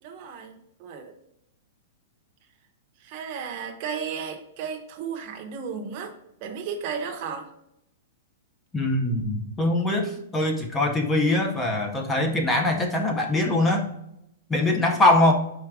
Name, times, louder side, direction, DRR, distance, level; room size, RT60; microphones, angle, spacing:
voice 1, 0.0-1.1 3.0-6.1 6.4-7.5, right 6 dB, 25° right, 3 dB, 0.7 m, -34 dB
voice 2, 8.7-13.9 14.5-15.3, left 2 dB, 5° left, 3 dB, 0.6 m, -22 dB
4.7 x 4.4 x 4.7 m, 0.80 s
supercardioid pair, 180°, 0 cm